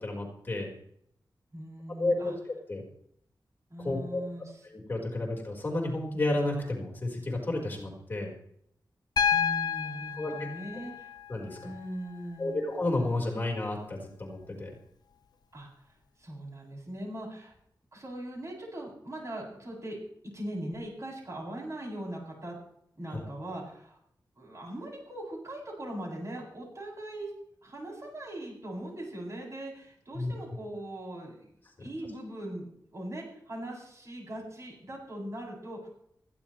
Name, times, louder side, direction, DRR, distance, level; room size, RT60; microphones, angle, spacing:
voice 1, 0.0-0.7 2.0-2.8 3.8-4.2 4.7-8.3 10.2-10.3 11.3-11.6 12.4-14.7 23.1-23.2 30.1-30.3, left 2 dB, 25° left, -1 dB, 4.6 m, -31 dB
voice 2, 1.5-2.4 3.7-4.6 9.3-11.1 11.6-12.6 15.5-17.5 17.9-20.0 20.2-22.5 22.9-24.0 24.4-27.3 27.6-35.9, right 1 dB, 40° right, -2 dB, 7.5 m, -40 dB
Piano, 9.2-13.2 14.7-14.8, left 7 dB, 60° left, 1.0 m, -32 dB
20.0 x 15.5 x 3.2 m, 0.70 s
wide cardioid pair, 120°, 8 cm